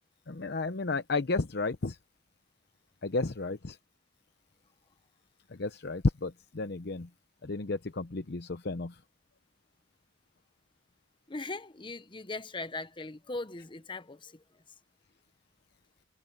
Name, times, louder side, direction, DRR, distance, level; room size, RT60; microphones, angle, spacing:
voice 1, 0.3-2.0 3.0-3.8 5.5-7.1 7.4-8.9, left 3 dB, 65° left, 0.8 m, -32 dB
voice 2, 11.3-14.3, left 3 dB, 25° left, 0.9 m, -39 dB
head